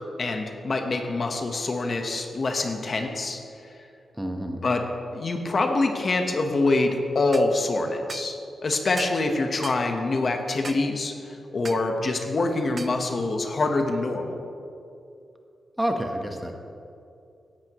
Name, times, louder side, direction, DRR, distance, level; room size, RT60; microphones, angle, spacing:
voice 1, 0.2-3.4 4.6-4.8 5.1-14.4, left 2 dB, 45° left, 4 dB, 1.1 m, -25 dB
voice 2, 4.2-4.6 15.8-16.5, equal, 10° right, 3 dB, 1.1 m, -28 dB
sound 1, 7.3-7.5 8.1-8.3 9.0-9.2 9.6-9.8 10.6-10.9 11.7-11.9 12.8-13.0, right 4 dB, 40° right, 0.4 m, -37 dB
16.5 x 11.0 x 3.1 m, 2.6 s
cardioid pair, 95°, 0 cm